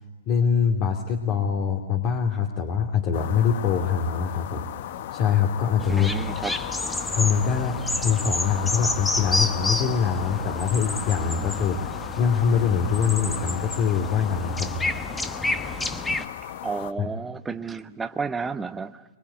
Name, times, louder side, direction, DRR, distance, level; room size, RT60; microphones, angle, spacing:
voice 1, 0.3-4.7 5.1-6.1 7.2-7.8 8.0-14.9 17.0-17.1, left 7 dB, 40° left, 2.7 m, -24 dB
sound 1, 3.1-16.9, left 12 dB, 55° left, 0.9 m, -36 dB
sound 2, 5.8-16.3, left 2 dB, 5° left, 1.2 m, -30 dB
voice 2, 5.9-6.5 16.6-19.0, right 4 dB, 10° right, 0.9 m, -31 dB
25.0 x 23.0 x 9.9 m
hypercardioid pair, 120°, 0 cm